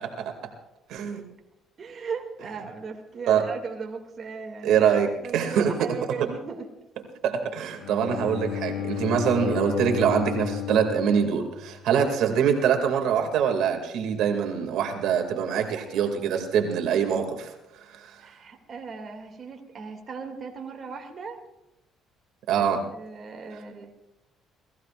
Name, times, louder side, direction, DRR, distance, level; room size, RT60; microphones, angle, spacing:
voice 1, 0.9-1.2 3.3-3.4 4.6-5.9 7.2-18.2 22.5-22.8, right 7 dB, 75° right, 4 dB, 2.4 m, -24 dB
voice 2, 1.8-4.8 5.2-6.7 8.7-9.1 18.2-21.4 22.5-22.7 22.9-23.9, right 5 dB, 40° right, 2 dB, 2.5 m, -37 dB
Bowed string instrument, 7.8-11.9, left 11 dB, 85° left, 1.8 m, -33 dB
29.0 x 19.0 x 2.5 m, 0.90 s
cardioid pair, 115°, 0 cm